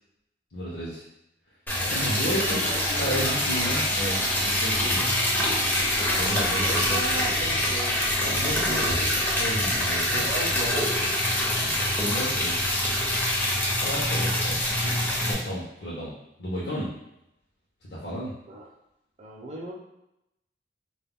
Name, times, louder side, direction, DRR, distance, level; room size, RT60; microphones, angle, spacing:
voice 1, 0.5-1.0 1.8-5.1 6.1-7.3 8.2-10.3 11.6-12.8 13.8-16.1 16.4-16.9 17.8-18.3, equal, 65° left, -8 dB, 0.7 m, -33 dB
Liquid, 1.7-15.3, left 1 dB, 10° left, 0.5 m, -25 dB
voice 2, 1.7-3.3 6.1-8.1 8.4-9.2 10.0-10.9 18.5-18.6 19.2-19.7, right 1 dB, 40° right, -1 dB, 0.5 m, -36 dB
2.3 x 2.1 x 3.5 m, 0.84 s
head